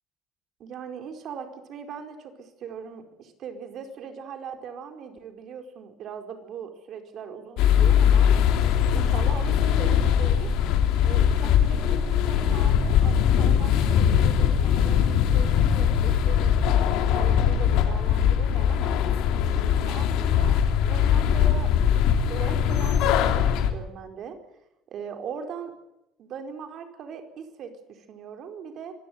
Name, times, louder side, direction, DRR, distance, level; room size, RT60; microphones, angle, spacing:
voice 1, 0.6-8.3 8.9-10.5 11.0-16.6 17.0-18.9 19.5-20.5 20.8-24.4 24.9-25.7 26.2-28.9, right 7 dB, 50° right, 5 dB, 4.6 m, -39 dB
sound 1, 7.6-23.7, left 8 dB, 80° left, 3.3 m, -21 dB
25.5 x 17.0 x 9.7 m, 0.86 s
cardioid pair, 145°, 0 cm